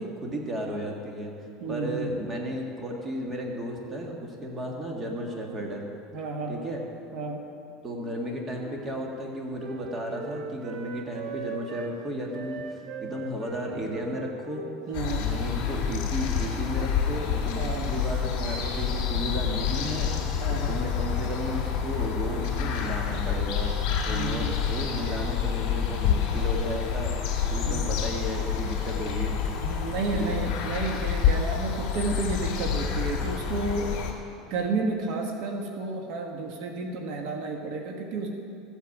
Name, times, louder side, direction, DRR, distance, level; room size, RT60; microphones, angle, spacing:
voice 1, 0.0-1.3 1.7-5.8 6.5-6.8 7.8-14.7 15.2-20.2 20.5-23.7 24.1-27.1 27.5-29.3 30.1-30.4, equal, 20° right, 0 dB, 1.8 m, -34 dB
voice 2, 1.6-2.1 6.1-6.6 7.1-7.4 14.9-15.2 17.5-17.9 20.4-20.8 24.1-24.6 27.6-27.8 29.6-34.0 34.5-38.3, right 3 dB, 60° right, 3 dB, 1.4 m, -31 dB
Wind instrument woodwind instrument, 8.0-11.9 12.3-16.7, right 5 dB, 45° right, 1.2 m, -41 dB
sound 1, 14.9-34.1, left 7 dB, 50° left, 2.8 m, -28 dB
14.5 x 8.3 x 7.2 m, 2.5 s
cardioid pair, 155°, 0 cm